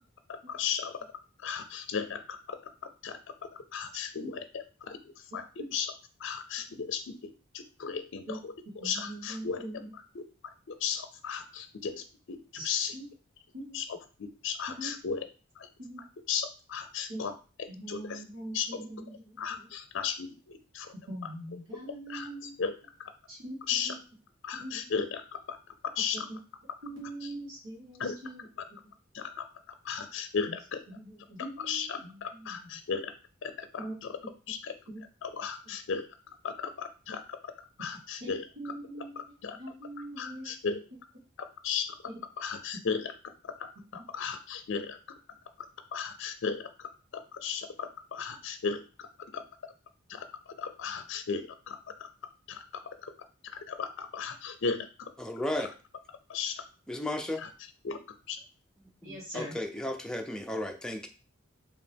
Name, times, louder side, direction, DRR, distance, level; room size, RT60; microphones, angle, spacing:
voice 1, 0.5-1.0 1.4-2.6 3.0-3.2 3.5-5.4 5.7-5.9 6.2-8.5 8.8-9.6 9.9-12.4 12.6-13.0 13.7-15.3 15.5-15.7 16.3-17.3 17.6-18.2 18.5-18.8 19.4-20.9 21.2-21.3 21.7-22.7 23.0-23.1 23.7-23.9 24.4-25.2 25.5-25.6 25.8-26.3 27.2-27.3 28.0-28.1 29.1-30.8 31.6-33.1 33.4-34.2 34.5-34.7 35.2-36.1 36.4-37.5 37.8-38.5 39.2-39.6 40.2-40.8 41.4-42.0 42.4-43.1 43.4-45.0 45.9-49.1 49.3-49.7 50.1-52.1 52.5-53.1 53.4-55.1 56.3-56.6 57.4-57.5 57.8-58.0 58.3-58.4, left 6 dB, 65° left, 9 dB, 0.5 m, -36 dB
voice 2, 8.8-9.9 12.6-13.1 13.5-13.8 14.8-14.9 15.8-16.0 17.1-17.2 17.7-19.4 21.1-22.6 23.3-23.5 23.8-24.0 24.5-24.8 26.8-28.4 30.4-30.5 30.9-32.6 33.8-33.9 34.9-35.0 38.2-39.2 39.6-40.5 59.0-59.6, right 1 dB, 80° right, -4 dB, 1.5 m, -42 dB
voice 3, 55.2-55.7 56.9-57.4 59.0-61.1, left 1 dB, 5° left, 3 dB, 0.5 m, -34 dB
4.8 x 2.8 x 3.5 m, 0.35 s
head